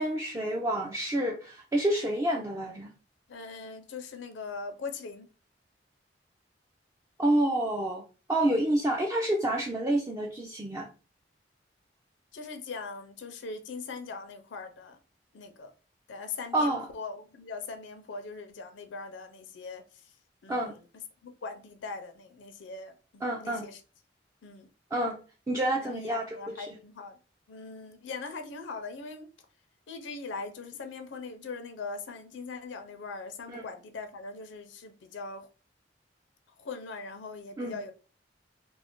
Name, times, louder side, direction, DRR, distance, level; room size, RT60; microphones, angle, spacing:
voice 1, 0.0-2.9 7.2-8.0 8.3-10.9 16.5-16.9 20.5-20.7 23.2-23.7 24.9-25.2 25.5-26.7 33.5-33.6 37.6-37.8, right 1 dB, 15° right, 0.3 m, -28 dB
voice 2, 3.3-5.3 12.3-15.0 15.3-15.7 16.1-20.1 20.4-20.8 21.2-23.8 24.4-24.7 25.8-27.2 27.5-29.3 29.9-35.5 36.6-37.9, left 4 dB, 85° left, 0.5 m, -41 dB
2.4 x 2.1 x 3.5 m
head